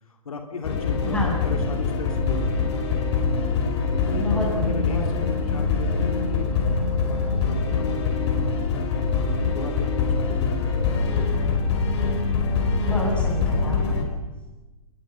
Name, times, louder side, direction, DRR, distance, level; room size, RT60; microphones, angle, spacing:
voice 1, 0.1-2.9 3.8-11.1, left 4 dB, 65° left, 4 dB, 3.0 m, -37 dB
sound 1, 0.6-14.0, left 4 dB, 45° left, 5.0 m, -24 dB
voice 2, 1.0-1.4 4.1-5.3 12.7-14.1, equal, 5° left, -2 dB, 7.7 m, -30 dB
29.5 x 20.0 x 5.8 m, 1.2 s
figure-of-eight pair, 120°, 19 cm